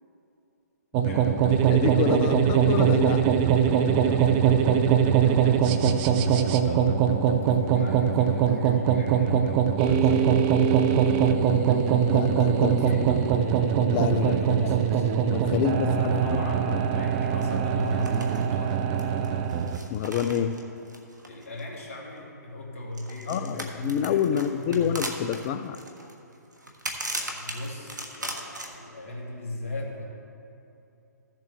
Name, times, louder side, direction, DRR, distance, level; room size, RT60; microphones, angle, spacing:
voice 1, 0.9-1.6 2.2-2.3 4.1-5.7 6.0-11.4 12.6-13.8 14.2-15.1 15.5-18.8 21.3-25.0 27.1-30.0, left 1 dB, 50° left, -2 dB, 2.1 m, -36 dB
sound 1, 0.9-19.8, right 8 dB, 30° right, 0.5 m, -22 dB
voice 2, 1.7-3.3 12.1-12.7 13.9-14.7 15.3-16.4 16.7-16.8 19.9-20.6 23.3-25.8, left 9 dB, 30° left, 11 dB, 0.4 m, -27 dB
sound 2, 17.4-17.5 17.8-18.4 18.7-22.0 22.9-28.7, right 1 dB, 80° right, 1.3 m, -37 dB
14.5 x 7.4 x 3.4 m, 2.7 s
figure-of-eight pair, 125°, 10 cm